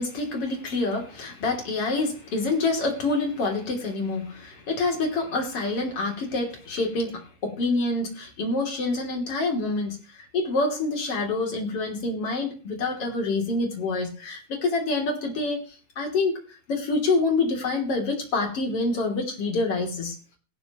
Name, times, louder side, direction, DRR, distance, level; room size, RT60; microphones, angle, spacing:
voice 1, 0.0-16.4 16.7-20.1, left 3 dB, 35° left, 2 dB, 3.5 m, -27 dB
19.5 x 11.5 x 3.0 m, 0.35 s
omnidirectional pair, 4.8 m